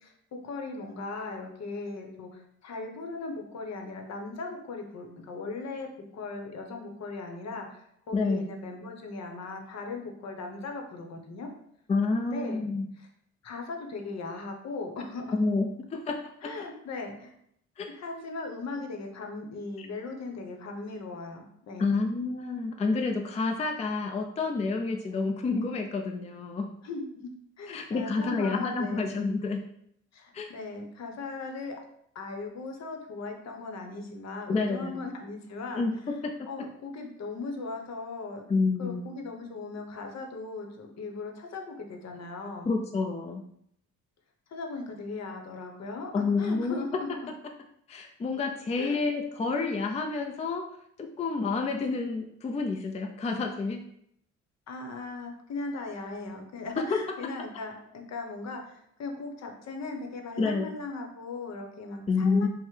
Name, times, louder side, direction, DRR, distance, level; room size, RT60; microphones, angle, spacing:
voice 1, 0.0-11.5 12.2-12.6 13.0-13.1 13.4-15.3 16.4-17.3 17.9-21.9 26.8-27.3 27.6-29.1 30.1-31.8 32.1-36.1 36.5-38.4 38.8-42.8 44.5-47.1 48.8-49.1 54.7-62.5, left 3 dB, 60° left, 3 dB, 0.9 m, -38 dB
voice 2, 8.1-8.5 11.9-12.9 15.3-16.5 17.8-17.9 19.8-19.9 21.8-26.7 27.7-29.6 30.3-30.5 34.5-35.1 35.8-36.3 38.5-39.0 42.7-43.4 46.1-46.8 47.9-50.6 51.0-53.8 56.9-57.0 60.4-60.7 62.1-62.5, left 4 dB, 20° left, 3 dB, 0.4 m, -29 dB
5.5 x 2.1 x 3.2 m, 0.72 s
cardioid pair, 90°, 30 cm